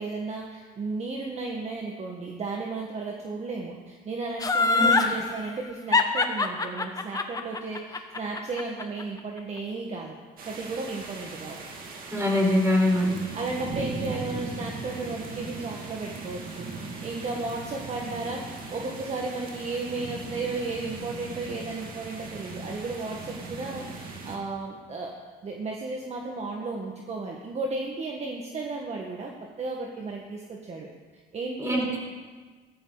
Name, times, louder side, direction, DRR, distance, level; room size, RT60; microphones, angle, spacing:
voice 1, 0.0-10.2 10.4-11.6 13.3-16.7 17.0-18.4 18.7-29.3 29.6-30.9 31.3-32.0, right 3 dB, 40° right, 0 dB, 1.7 m, -34 dB
Laughter, 4.4-5.1 5.9-9.0 9.4-9.5, left 3 dB, 20° left, 1.1 m, -23 dB
voice 2, 4.7-5.2 12.1-13.2 31.6-32.0, left 1 dB, 15° right, -1 dB, 4.6 m, -24 dB
sound 1, 10.4-24.4, right 3 dB, 55° right, 2.5 m, -38 dB
15.5 x 14.0 x 4.1 m, 1.4 s
cardioid pair, 110°, 17 cm